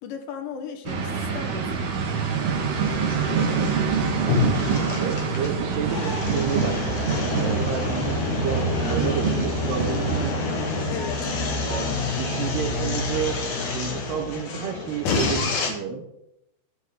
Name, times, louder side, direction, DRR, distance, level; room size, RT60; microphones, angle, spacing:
voice 1, 0.0-1.9 10.9-11.3, left 6 dB, 75° left, 4 dB, 3.1 m, -36 dB
sound 1, 0.9-10.3, right 5 dB, 55° right, 2.8 m, -26 dB
sound 2, 2.6-15.7, left 4 dB, 50° left, 2.8 m, -28 dB
voice 2, 4.2-7.0 7.4-10.4 11.6-11.9 12.2-13.4 13.7-16.0, right 7 dB, 75° right, 5 dB, 2.6 m, -30 dB
sound 3, 7.8-13.2, right 6 dB, 25° left, 2.2 m, -35 dB
12.0 x 10.5 x 3.8 m, 0.83 s
omnidirectional pair, 5.4 m